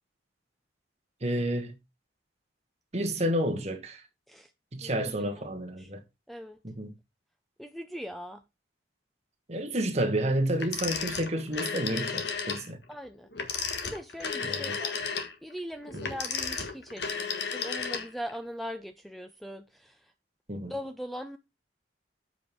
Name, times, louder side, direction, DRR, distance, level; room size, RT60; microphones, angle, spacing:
voice 1, 1.2-1.7 2.9-4.0 4.7-6.0 6.6-6.9 9.5-12.8 14.4-14.8 15.9-16.1 20.5-20.7, right 1 dB, 35° right, 1.4 m, -30 dB
voice 2, 4.8-5.4 5.8-5.9 6.3-6.6 7.6-8.4 12.9-13.3 13.8-14.9 15.4-20.1 20.7-21.4, equal, ahead, 0.5 m, -40 dB
Telephone, 10.6-12.7 13.3-18.4, left 5 dB, 60° left, 1.6 m, -33 dB
7.7 x 5.4 x 4.6 m
head